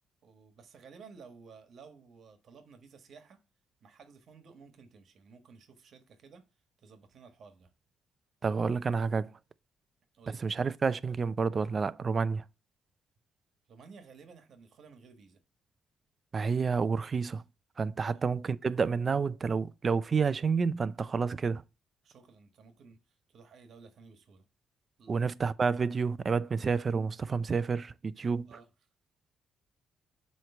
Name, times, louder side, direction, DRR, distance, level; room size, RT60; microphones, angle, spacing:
voice 1, 0.2-3.4 3.8-6.4 6.8-7.7 10.1-10.4 13.7-15.4 18.0-18.2 22.0-24.5 25.0-25.2 28.2-28.7, right 5 dB, 60° right, 1.3 m, -55 dB
voice 2, 8.4-9.4 10.3-12.4 16.3-17.4 17.8-21.6 25.1-28.5, right 5 dB, 40° right, 0.4 m, -29 dB
7.6 x 3.2 x 5.9 m
cardioid pair, 90°, 0 cm